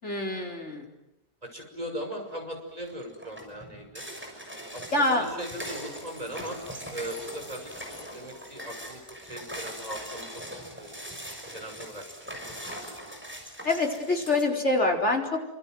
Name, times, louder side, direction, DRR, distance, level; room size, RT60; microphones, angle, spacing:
voice 1, 0.0-0.9 4.9-5.3 13.6-15.5, left 2 dB, 50° left, 2 dB, 4.7 m, -26 dB
voice 2, 1.4-4.0 4.7-6.6 6.9-7.7 8.1-9.0 9.3-10.3 10.8-11.0 11.5-12.5, equal, 25° right, 3 dB, 6.2 m, -39 dB
sound 1, 2.0-2.4 2.8-14.4, equal, 5° right, 6.5 m, -41 dB
29.0 x 26.0 x 7.8 m, 0.91 s
omnidirectional pair, 1.6 m